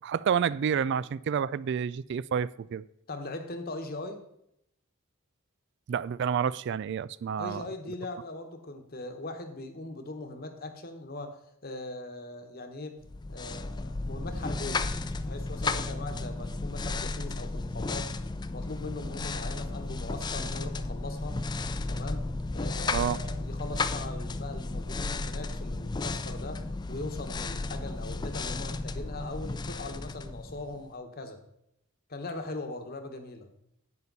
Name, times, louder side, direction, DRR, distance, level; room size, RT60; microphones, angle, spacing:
voice 1, 0.0-2.8 5.9-7.6 22.9-23.2, right 7 dB, 55° right, 0.3 m, -29 dB
voice 2, 3.1-4.2 7.4-13.0 13.3-18.1 18.5-21.4 21.9-22.2 22.5-31.4 32.1-33.5, left 2 dB, 45° left, 1.3 m, -40 dB
sound 1, 13.1-30.9, left 3 dB, 20° left, 0.4 m, -34 dB
11.0 x 8.6 x 4.1 m
head